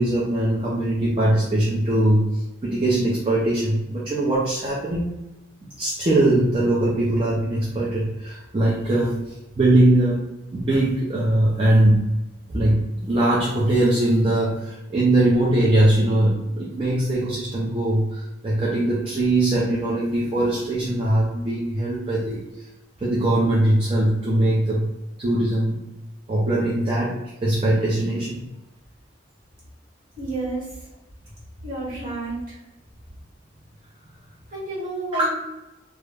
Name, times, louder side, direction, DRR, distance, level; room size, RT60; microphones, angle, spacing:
voice 1, 0.0-5.1 5.8-12.1 12.5-22.4 23.0-24.9 25.2-25.8 26.3-28.5 35.1-35.3, right 1 dB, 30° right, -6 dB, 0.4 m, -21 dB
voice 2, 30.2-30.7 31.6-32.6 34.5-35.3, right 2 dB, 50° right, -7 dB, 1.3 m, -30 dB
2.3 x 2.0 x 3.2 m, 0.99 s
head